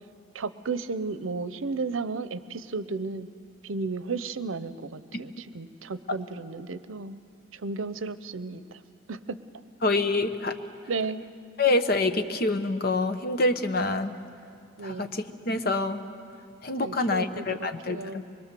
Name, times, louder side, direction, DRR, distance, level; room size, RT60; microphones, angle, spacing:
voice 1, 0.3-3.3 3.6-7.2 7.5-8.8 9.1-9.4 10.9-11.3 14.8-15.2 16.8-18.2, right 4 dB, 85° right, 14 dB, 0.7 m, -33 dB
voice 2, 9.8-10.5 11.6-14.2 14.8-16.0 16.6-18.3, left 2 dB, 50° left, 8 dB, 0.9 m, -26 dB
24.0 x 22.0 x 6.8 m, 2.3 s
head